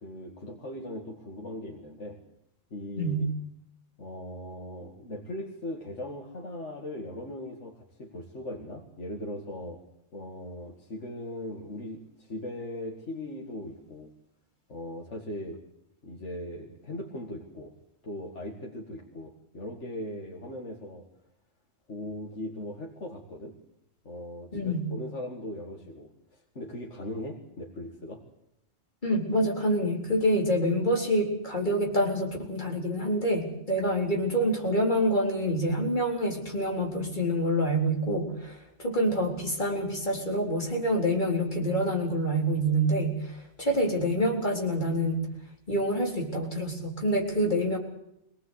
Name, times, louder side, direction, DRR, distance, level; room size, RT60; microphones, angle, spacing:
voice 1, 0.0-2.2 2.7-3.3 4.0-9.8 10.1-14.1 14.7-15.6 16.0-17.7 18.0-21.1 21.9-23.6 24.0-28.2, left 1 dB, 90° left, 1 dB, 2.4 m, -39 dB
voice 2, 24.5-24.9 29.0-45.3 45.7-47.8, equal, 40° left, 0 dB, 4.2 m, -27 dB
23.5 x 19.0 x 8.3 m, 0.80 s
omnidirectional pair, 1.2 m